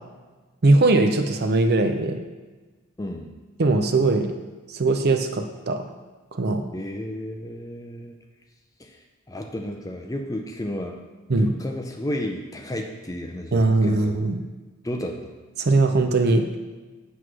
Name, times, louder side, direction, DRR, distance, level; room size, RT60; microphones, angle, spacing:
voice 1, 0.6-2.2 3.6-4.3 4.7-5.8 6.3-6.6 11.3-11.5 13.5-14.4 15.6-16.5, right 2 dB, 45° right, 6 dB, 0.5 m, -20 dB
voice 2, 3.0-3.3 6.7-8.2 8.8-9.0 9.3-11.0 11.3-14.2 14.8-15.3, left 1 dB, 15° left, 3 dB, 0.5 m, -32 dB
8.0 x 3.1 x 6.1 m, 1.3 s
head